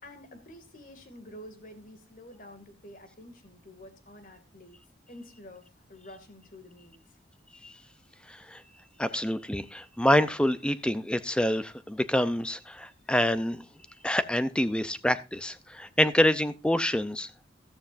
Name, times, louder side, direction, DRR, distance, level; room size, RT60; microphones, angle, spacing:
voice 1, 0.0-4.8 5.1-7.2, left 1 dB, 50° left, 7 dB, 2.3 m, -49 dB
voice 2, 8.3-8.6 9.0-13.6 14.0-17.3, left 1 dB, 5° left, 13 dB, 0.6 m, -26 dB
14.0 x 13.0 x 2.6 m, 0.28 s
head